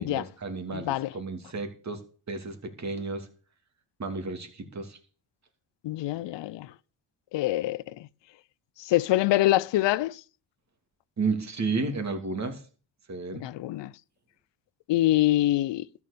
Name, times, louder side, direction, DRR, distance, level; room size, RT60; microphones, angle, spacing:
voice 1, 0.0-3.3 4.0-5.0 11.2-12.6 13.1-13.4, right 4 dB, 35° right, 2.8 m, -32 dB
voice 2, 0.7-1.1 5.8-6.7 7.3-7.8 8.8-10.2 13.3-13.9 14.9-15.8, left 15 dB, 70° left, 0.7 m, -25 dB
13.0 x 7.4 x 6.8 m
cardioid pair, 95°, 45 cm